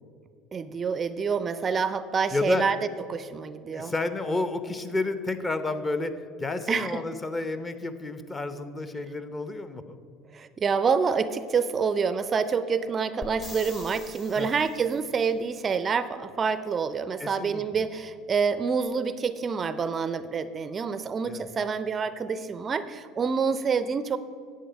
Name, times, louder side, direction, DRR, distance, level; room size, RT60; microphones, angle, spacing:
voice 1, 0.5-2.8 3.1-3.9 6.7-7.0 10.3-24.2, right 5 dB, 30° right, 14 dB, 0.4 m, -27 dB
voice 2, 2.3-2.6 3.7-10.0 14.4-14.5 17.2-17.9 21.2-21.5, left 2 dB, 20° left, 10 dB, 0.7 m, -31 dB
sound 1, 13.2-15.1 18.9-19.0, left 3 dB, 45° left, 2.4 m, -43 dB
10.0 x 7.4 x 5.1 m, 2.4 s
hypercardioid pair, 70°, 0 cm